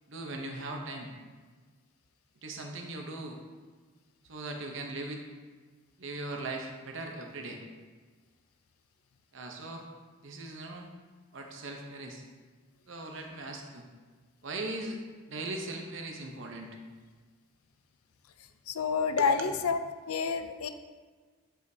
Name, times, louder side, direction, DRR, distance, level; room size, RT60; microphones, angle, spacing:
voice 1, 0.1-1.1 2.4-3.4 4.3-5.2 6.0-7.6 9.3-9.8 10.2-10.9 11.3-12.2 12.9-13.8 14.4-15.0 15.3-16.7 19.2-19.5, right 2 dB, 60° right, 2 dB, 0.9 m, -39 dB
voice 2, 18.7-19.8 20.1-20.7, left 5 dB, 85° left, 9 dB, 0.5 m, -28 dB
9.1 x 5.0 x 2.8 m, 1.5 s
head